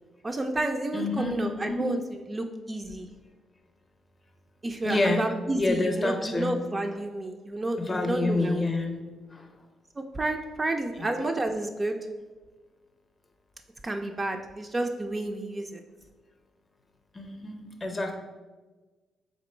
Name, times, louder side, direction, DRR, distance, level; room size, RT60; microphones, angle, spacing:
voice 1, 0.2-2.0 2.3-3.1 4.6-8.6 10.0-12.0 13.8-15.8, right 2 dB, 25° right, 4 dB, 0.3 m, -30 dB
voice 2, 0.9-1.8 4.8-5.3 5.5-6.6 7.8-9.0 9.3-9.5 10.9-11.1 17.1-18.2, left 2 dB, 25° left, 4 dB, 0.6 m, -28 dB
3.6 x 3.0 x 4.3 m, 1.3 s
cardioid pair, 90°, 0 cm